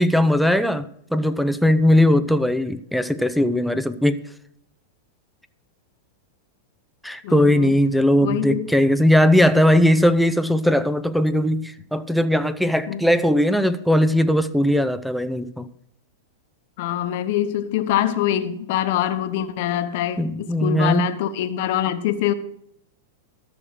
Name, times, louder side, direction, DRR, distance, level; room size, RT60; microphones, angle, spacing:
voice 1, 0.0-4.2 7.0-15.7 20.2-21.1, left 1 dB, ahead, 0.7 m, -19 dB
voice 2, 7.2-7.7 8.2-8.7 12.9-13.0 16.8-22.3, left 11 dB, 60° left, 1.1 m, -24 dB
13.0 x 6.4 x 6.3 m
hypercardioid pair, 115°, 0 cm